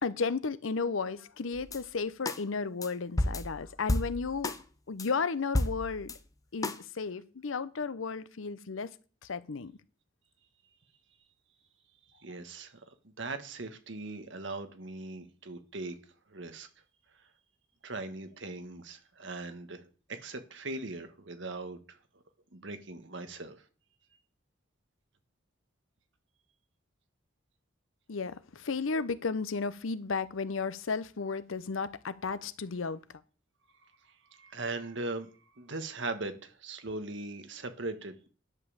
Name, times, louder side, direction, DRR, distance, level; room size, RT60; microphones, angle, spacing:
voice 1, 0.0-4.5 4.9-6.1 6.5-8.9 9.2-9.7 28.1-33.0, left 4 dB, 85° left, 0.7 m, -33 dB
sound 1, 1.5-1.8 2.3-2.4 2.8-2.9 3.2-4.6 5.0-5.1 5.5-6.2 6.6-6.8, left 1 dB, 15° left, 0.6 m, -31 dB
voice 2, 12.2-16.0 16.3-16.7 17.8-19.8 20.1-22.0 22.5-23.6 34.3-35.3 35.6-38.3, right 2 dB, 65° right, 1.4 m, -39 dB
10.5 x 5.3 x 7.2 m
head